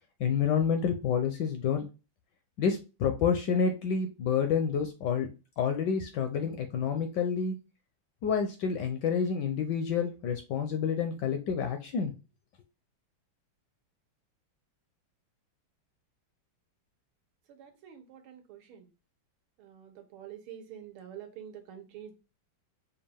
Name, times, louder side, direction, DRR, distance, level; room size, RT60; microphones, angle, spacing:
voice 1, 0.2-1.9 2.6-5.3 5.6-7.6 8.2-12.1, left 6 dB, 75° left, 6 dB, 1.0 m, -28 dB
voice 2, 17.5-18.9 19.6-22.1, right 9 dB, 80° right, 5 dB, 1.7 m, -47 dB
5.3 x 2.3 x 3.3 m, 0.30 s
omnidirectional pair, 2.3 m